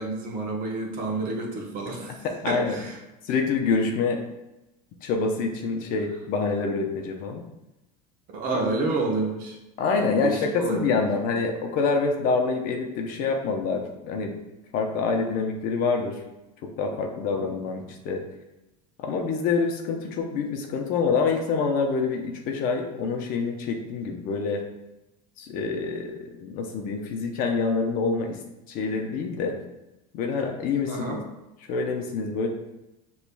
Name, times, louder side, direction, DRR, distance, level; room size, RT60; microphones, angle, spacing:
voice 1, 0.0-3.0 8.3-9.6 10.2-10.9 17.3-17.5 30.9-31.2, right 3 dB, 45° right, 0 dB, 1.0 m, -29 dB
voice 2, 2.2-2.8 3.2-4.2 5.0-7.4 9.8-14.3 14.7-16.2 16.6-18.2 19.0-24.6 25.4-28.4 28.7-29.6 30.1-31.2 31.6-32.5, left 4 dB, 50° left, 3 dB, 0.7 m, -26 dB
6.7 x 3.1 x 2.2 m, 0.96 s
supercardioid pair, 140°, 19 cm